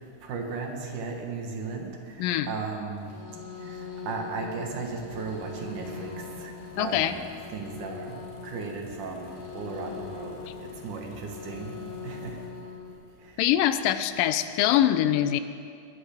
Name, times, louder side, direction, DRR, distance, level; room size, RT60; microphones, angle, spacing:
voice 1, 0.2-3.1 3.6-6.5 6.8-7.2 7.5-11.7 12.0-12.4 13.2-13.3, right 4 dB, 65° right, 2 dB, 2.7 m, -36 dB
sound 1, 3.0-12.9, left 5 dB, 45° left, 3.1 m, -42 dB
sound 2, 4.9-12.5, left 4 dB, 70° left, 3.4 m, -51 dB
voice 2, 6.8-7.2 13.4-15.4, left 12 dB, 85° left, 12 dB, 2.2 m, -23 dB
20.5 x 13.0 x 3.5 m, 2.3 s
omnidirectional pair, 4.0 m